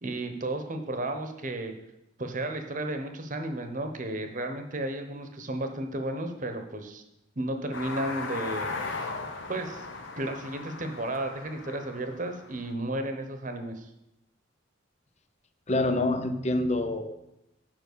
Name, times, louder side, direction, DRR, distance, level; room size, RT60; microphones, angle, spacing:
voice 1, 0.0-1.7 2.2-7.0 7.4-8.7 9.5-9.9 10.2-13.9, right 1 dB, 40° right, 6 dB, 1.1 m, -33 dB
sound 1, 7.7-12.7, left 3 dB, 70° left, 1.1 m, -37 dB
voice 2, 15.7-17.1, left 2 dB, 35° left, 8 dB, 0.8 m, -26 dB
9.4 x 5.7 x 6.8 m, 0.87 s
head